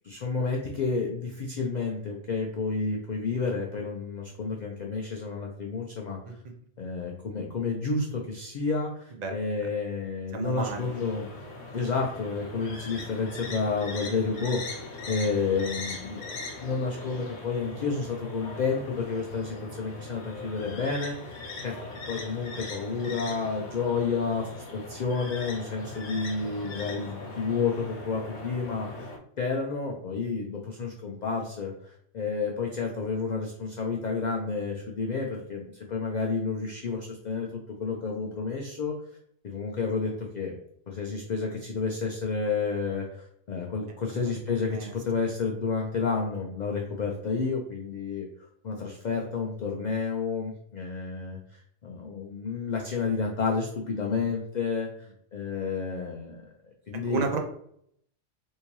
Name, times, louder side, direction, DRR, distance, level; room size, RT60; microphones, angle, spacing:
voice 1, 0.0-6.2 6.8-11.3 11.7-16.3 16.6-21.7 22.1-29.1 29.4-37.5 37.8-38.9 39.4-40.5 40.9-48.3 48.6-54.9 55.3-57.3, left 4 dB, 55° left, 0 dB, 0.5 m, -30 dB
voice 2, 10.3-11.0 44.1-44.2 44.7-44.9 54.0-54.3 56.9-57.4, right 4 dB, 50° right, 3 dB, 0.5 m, -32 dB
sound 1, 10.6-29.2, left 3 dB, 85° left, 1.1 m, -40 dB
3.6 x 2.7 x 2.9 m, 0.68 s
omnidirectional pair, 1.2 m